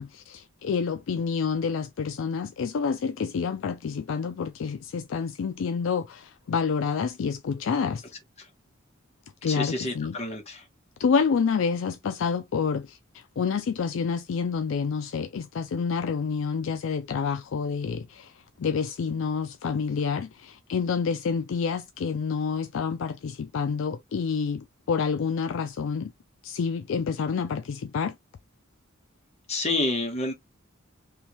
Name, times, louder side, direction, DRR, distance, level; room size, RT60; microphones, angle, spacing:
voice 1, 0.0-8.0 9.4-10.1 11.0-18.3 18.6-26.1 26.4-28.2, left 5 dB, 65° left, 0.4 m, -28 dB
voice 2, 9.5-10.6 29.5-30.3, left 2 dB, 30° left, 1.3 m, -28 dB
3.4 x 2.6 x 2.9 m
head